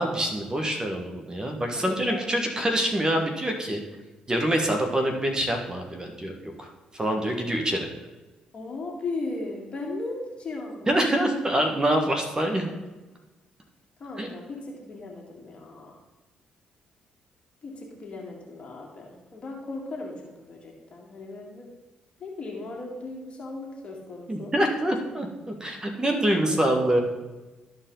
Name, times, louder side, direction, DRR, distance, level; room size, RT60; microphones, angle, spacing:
voice 1, 0.0-3.8 4.3-7.9 10.9-12.7 14.2-14.3 24.3-27.0, right 1 dB, 25° right, 3 dB, 1.6 m, -25 dB
voice 2, 1.8-2.3 8.5-10.9 11.5-11.6 12.5-12.6 14.0-16.0 17.6-21.7 22.2-24.5 25.9-27.0, left 3 dB, 45° left, -2 dB, 2.0 m, -37 dB
13.0 x 4.7 x 3.9 m, 1.1 s
supercardioid pair, 60°, 3 cm